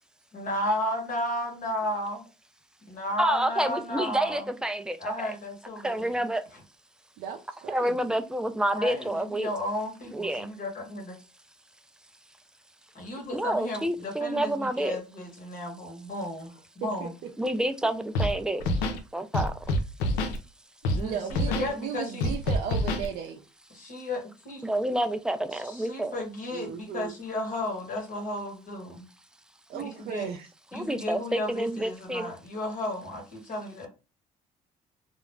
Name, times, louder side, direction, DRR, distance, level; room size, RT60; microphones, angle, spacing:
voice 1, 0.3-2.2 2.9-4.5 5.0-6.2 8.7-11.1 12.9-17.1 20.9-22.4 23.7-24.6 25.5-29.1 29.8-30.3 30.7-33.9, left 1 dB, 55° left, 1.1 m, -34 dB
voice 2, 3.2-5.3 5.8-6.5 7.7-9.5 10.1-10.5 13.3-15.0 17.4-18.7 19.1-19.7 24.6-26.2 29.7-29.8 30.7-32.3, right 1 dB, 5° right, 0.4 m, -28 dB
voice 3, 7.2-7.9 16.8-17.1 20.9-23.4 26.5-27.1 29.7-30.5, right 8 dB, 75° right, 0.4 m, -35 dB
Scratching (performance technique), 18.1-18.3 18.6-19.0 19.3-20.4 20.8-21.0 21.3-21.7 22.2-23.1, left 1 dB, 90° left, 0.5 m, -26 dB
2.3 x 2.0 x 3.2 m
supercardioid pair, 85°, 16 cm